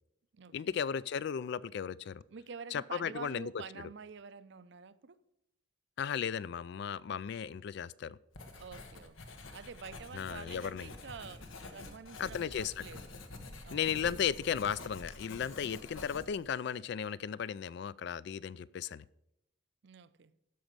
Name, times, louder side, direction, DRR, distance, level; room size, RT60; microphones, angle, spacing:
voice 1, 0.5-2.2 2.7-3.5 6.0-8.2 10.1-10.9 12.2-12.8 13.7-19.0, left 8 dB, 55° left, 0.3 m, -35 dB
voice 2, 2.3-5.2 8.6-13.1 13.6-13.9 19.8-20.3, right 5 dB, 60° right, 0.5 m, -48 dB
Writing, 8.3-16.5, left 2 dB, 85° left, 1.3 m, -48 dB
13.0 x 5.2 x 6.7 m
head